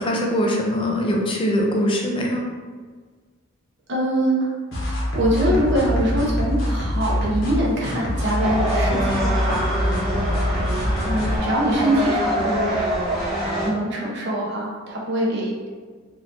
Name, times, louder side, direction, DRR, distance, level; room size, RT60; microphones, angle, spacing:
voice 1, 0.0-2.4, equal, 25° left, 0 dB, 0.4 m, -22 dB
voice 2, 3.9-4.5 4.9-9.7 11.0-12.7 13.6-15.7, equal, 55° right, -4 dB, 0.9 m, -23 dB
sound 1, 4.7-11.4, equal, 65° left, 1.0 m, -24 dB
sound 2, 8.4-13.7, right 1 dB, ahead, 0.9 m, -25 dB
4.0 x 2.7 x 2.6 m, 1.5 s
head